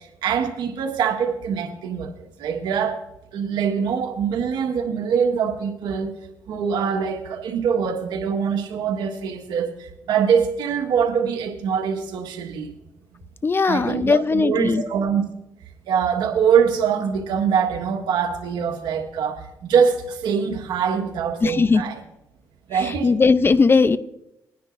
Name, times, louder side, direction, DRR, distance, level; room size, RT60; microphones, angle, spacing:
voice 1, 0.2-3.0 3.3-6.1 6.5-12.7 13.7-15.2 15.9-22.0 22.7-23.1, right 7 dB, 85° right, 4 dB, 1.5 m, -23 dB
voice 2, 13.4-14.8 21.4-21.8 23.0-24.0, left 4 dB, 30° left, 14 dB, 0.7 m, -18 dB
21.0 x 10.0 x 2.6 m, 0.86 s
cardioid pair, 75°, 7 cm